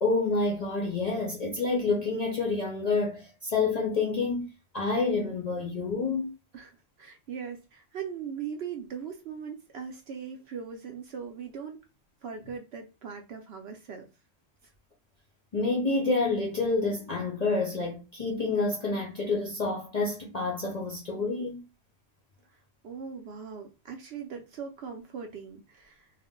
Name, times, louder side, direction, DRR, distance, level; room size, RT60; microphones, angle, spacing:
voice 1, 0.0-4.5 4.7-6.3 15.5-21.6, left 3 dB, 50° left, 0.5 m, -28 dB
voice 2, 6.5-11.8 12.2-14.1 22.8-26.1, right 6 dB, 65° right, 0.7 m, -40 dB
2.5 x 2.1 x 3.6 m
omnidirectional pair, 1.4 m